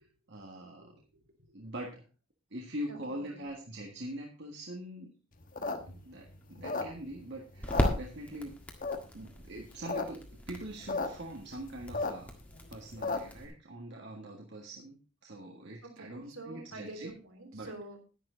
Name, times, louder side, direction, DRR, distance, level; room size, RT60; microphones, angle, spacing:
voice 1, 0.3-0.9 1.5-2.0 2.5-5.1 5.9-8.6 9.1-12.3 12.7-17.1 17.5-17.7, right 1 dB, 50° right, 0 dB, 1.7 m, -43 dB
voice 2, 2.9-3.4 15.8-18.0, right 2 dB, 70° right, 3 dB, 3.4 m, -47 dB
sound 1, 5.4-7.2 7.6-8.5 8.8-9.3 9.7-10.0 10.3-10.4 10.6-11.1 11.4-13.4, left 3 dB, 40° left, 1.2 m, -34 dB
sound 2, 5.5-13.5, equal, 5° left, 1.6 m, -38 dB
10.5 x 10.5 x 3.9 m, 0.33 s
head